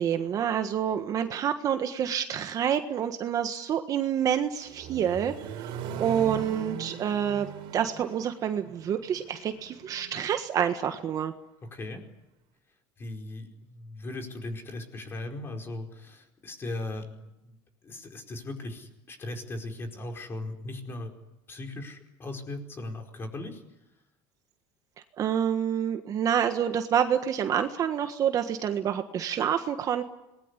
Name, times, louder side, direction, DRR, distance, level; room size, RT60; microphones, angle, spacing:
voice 1, 0.0-5.7 6.0-11.3 25.2-30.0, right 9 dB, 35° right, 7 dB, 1.5 m, -28 dB
Accelerating revving vroom, 4.2-10.2, right 8 dB, 60° right, 3.7 m, -40 dB
voice 2, 11.7-12.0 13.0-17.5 17.8-21.1 21.5-23.6, left 2 dB, 25° left, 4 dB, 4.8 m, -38 dB
26.5 x 21.0 x 9.9 m, 0.92 s
cardioid pair, 145°, 10 cm